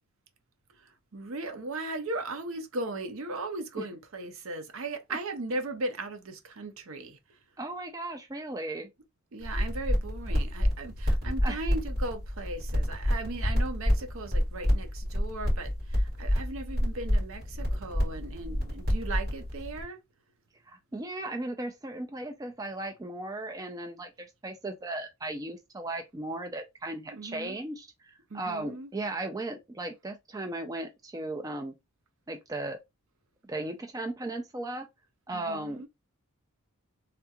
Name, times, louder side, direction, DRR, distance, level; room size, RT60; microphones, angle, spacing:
voice 1, 1.1-7.2 9.3-20.0 27.1-27.6 28.3-28.9 35.3-35.9, right 2 dB, 65° right, 0.6 m, -37 dB
voice 2, 7.6-8.9 11.4-11.6 20.7-31.7 32.3-32.8 33.4-34.9 35.3-35.9, right 2 dB, 15° right, 0.3 m, -36 dB
sound 1, 9.4-19.8, equal, 45° right, 2.2 m, -29 dB
3.4 x 2.3 x 2.8 m
head